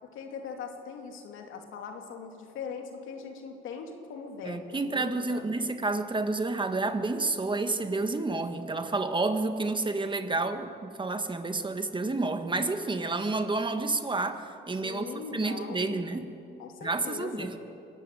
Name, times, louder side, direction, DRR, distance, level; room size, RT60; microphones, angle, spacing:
voice 1, 0.0-5.4 14.8-16.1 16.6-17.5, left 5 dB, 85° left, 3 dB, 2.8 m, -41 dB
voice 2, 4.4-16.2 16.8-17.5, right 3 dB, 25° right, 8 dB, 1.6 m, -30 dB
23.0 x 13.0 x 9.2 m, 2.6 s
cardioid pair, 90°, 20 cm